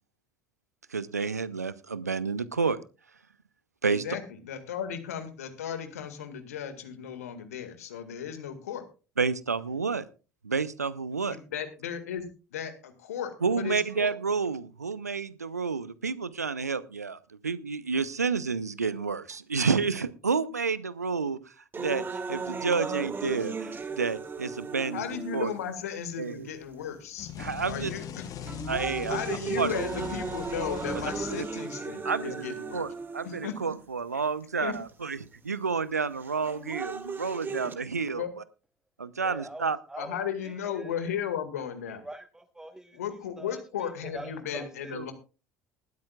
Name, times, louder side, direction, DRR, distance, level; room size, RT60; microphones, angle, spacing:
voice 1, 0.9-2.8 3.8-4.0 9.2-10.1 10.4-11.4 13.4-17.2 17.4-21.4 21.8-22.0 22.3-25.0 25.3-25.5 26.2-26.5 27.4-27.9 28.7-29.2 29.6-29.7 31.3-31.4 32.0-35.2 35.4-38.2 39.0-39.8 44.9-45.0, right 5 dB, 85° right, 18 dB, 0.7 m, -30 dB
voice 2, 3.9-8.8 11.3-14.1 24.9-27.3 27.7-28.3 29.1-32.9 33.2-33.6 34.1-34.2 34.6-34.7 38.1-38.3 40.0-42.0 42.9-45.1, left 8 dB, 70° left, 9 dB, 1.9 m, -35 dB
sound 1, 21.7-25.8 26.5-26.6 27.4-27.7 28.2-33.7 34.7-34.8 36.2-37.7, right 4 dB, 25° right, 2.1 m, -36 dB
sound 2, 27.2-32.1, left 8 dB, 45° left, 1.0 m, -40 dB
voice 3, 39.2-41.1 41.9-43.0 43.4-45.1, right 1 dB, 5° right, 9 dB, 1.0 m, -44 dB
19.0 x 13.0 x 2.4 m, 0.33 s
figure-of-eight pair, 60°, 8 cm